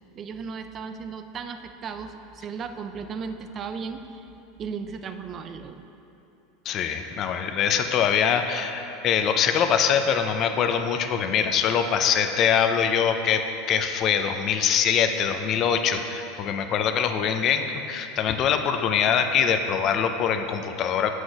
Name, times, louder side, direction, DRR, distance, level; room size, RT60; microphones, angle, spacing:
voice 1, 0.2-4.3 4.6-5.8, right 5 dB, 35° right, 8 dB, 0.5 m, -35 dB
voice 2, 6.7-21.1, left 7 dB, 45° left, 7 dB, 0.6 m, -23 dB
7.8 x 6.4 x 4.8 m, 2.8 s
hypercardioid pair, 100°, 0 cm